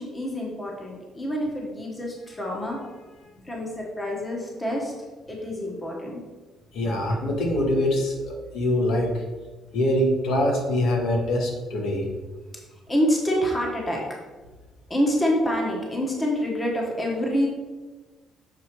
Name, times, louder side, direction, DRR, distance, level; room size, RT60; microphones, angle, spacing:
voice 1, 0.0-4.9 5.3-6.2 12.9-14.0 14.9-17.5, equal, 15° left, -2 dB, 1.1 m, -27 dB
voice 2, 6.7-9.1 9.7-12.0, left 1 dB, 65° left, 1 dB, 1.3 m, -24 dB
6.7 x 4.7 x 4.5 m, 1.3 s
cardioid pair, 180°, 0 cm